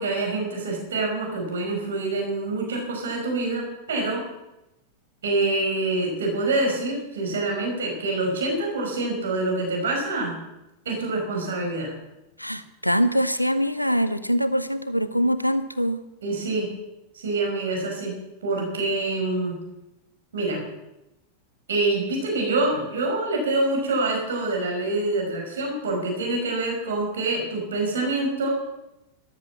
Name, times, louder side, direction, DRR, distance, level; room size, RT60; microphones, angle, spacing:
voice 1, 0.0-4.3 5.2-10.4 10.9-11.9 16.2-16.7 17.1-18.1 18.4-19.6 20.3-20.6 21.7-28.5, right 2 dB, 65° right, 1 dB, 5.4 m, -26 dB
voice 2, 12.4-16.0, equal, 90° left, 13 dB, 0.9 m, -23 dB
14.0 x 12.5 x 7.3 m, 0.93 s
figure-of-eight pair, 90°, 0 cm